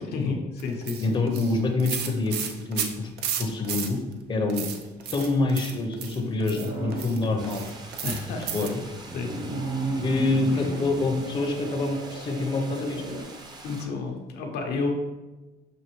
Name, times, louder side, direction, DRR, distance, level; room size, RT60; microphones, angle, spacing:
voice 1, 0.1-1.2 8.0-8.7 9.1-9.3 13.6-14.9, left 4 dB, 75° left, 2 dB, 0.8 m, -30 dB
sound 1, 0.6-4.2 4.5-8.9, right 8 dB, 75° right, 0.5 m, -34 dB
voice 2, 1.0-3.1 3.4-4.0 4.3-4.7 5.1-7.7 8.5-8.8 10.0-13.0, left 2 dB, 30° left, 2 dB, 0.6 m, -26 dB
sound 2, 6.5-7.6 8.8-13.2, right 2 dB, 55° right, 1.1 m, -34 dB
sound 3, 7.4-13.9, right 2 dB, 25° right, 0.6 m, -45 dB
6.3 x 2.6 x 3.0 m, 1.1 s
cardioid pair, 110°, 17 cm